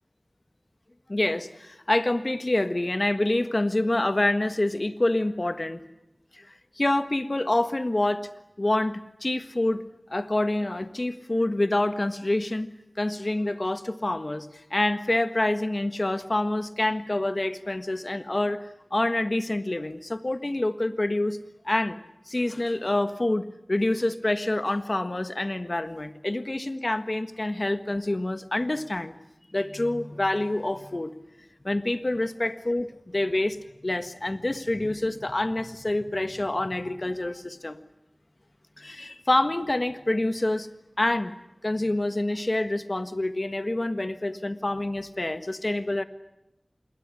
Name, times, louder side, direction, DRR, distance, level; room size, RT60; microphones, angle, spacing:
voice 1, 1.1-5.8 6.3-6.5 6.8-8.3 8.6-21.4 21.6-22.0 22.3-29.1 29.5-31.1 31.6-33.6 33.8-37.8 38.8-40.7 41.0-41.3 41.6-46.0, left 1 dB, 50° left, 10 dB, 1.5 m, -27 dB
27.5 x 21.0 x 10.0 m, 0.91 s
wide cardioid pair, 45°, 0 cm